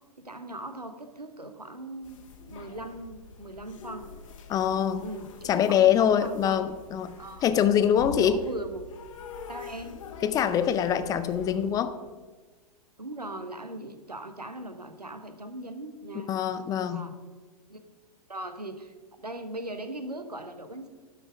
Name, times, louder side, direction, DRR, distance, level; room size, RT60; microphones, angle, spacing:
voice 1, 0.2-2.2 2.5-4.1 5.0-6.6 7.2-7.4 8.2-8.8 9.5-10.0 13.0-17.2 17.7-17.8 18.3-20.9, right 1 dB, 85° right, 9 dB, 1.0 m, -39 dB
sound 1, 2.0-11.7, left 4 dB, 55° left, 1.2 m, -45 dB
voice 2, 4.5-5.1 5.5-7.1 7.4-8.4 10.2-12.0 16.3-17.1, left 9 dB, 20° left, 11 dB, 0.5 m, -24 dB
12.0 x 5.8 x 5.1 m, 1.3 s
figure-of-eight pair, 105°, 20 cm